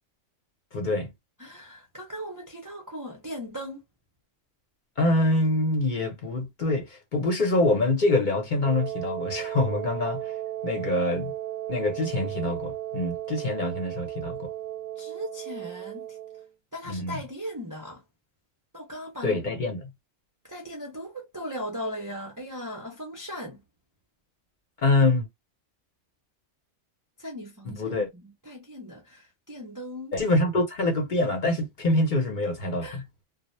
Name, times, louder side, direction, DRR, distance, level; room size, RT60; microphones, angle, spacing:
voice 1, 0.7-1.1 5.0-10.2 10.6-11.3 11.7-14.5 16.8-17.2 19.2-19.8 24.8-25.3 27.7-28.1 30.1-33.0, left 2 dB, 45° left, 0.7 m, -25 dB
voice 2, 1.4-3.8 15.0-16.2 16.7-18.0 18.7-19.4 20.4-23.6 27.2-30.1 32.8-33.0, equal, 30° right, 0.4 m, -38 dB
Wind instrument woodwind instrument, 8.6-16.5, right 13 dB, 90° right, 0.9 m, -35 dB
2.0 x 2.0 x 3.0 m
omnidirectional pair, 1.3 m